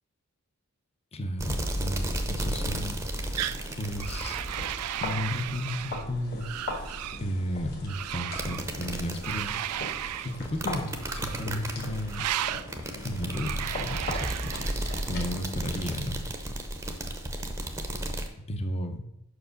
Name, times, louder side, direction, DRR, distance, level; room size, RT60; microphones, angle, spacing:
voice 1, 1.1-3.0 3.8-4.4 5.0-6.8 7.2-9.8 10.2-12.2 13.0-16.2 16.8-17.0 18.5-19.0, left 1 dB, 30° left, 6 dB, 0.7 m, -34 dB
sound 1, 1.4-5.6 8.3-18.3, right 1 dB, 10° right, 0.7 m, -34 dB
sound 2, 3.1-15.9, left 1 dB, 45° left, 1.7 m, -40 dB
sound 3, 3.4-3.6 4.0-6.1 6.4-7.2 7.9-8.7 9.2-10.4 11.0-11.6 12.1-12.7 13.3-15.1, right 12 dB, 85° right, 0.3 m, -34 dB
5.9 x 4.9 x 6.4 m, 0.83 s
head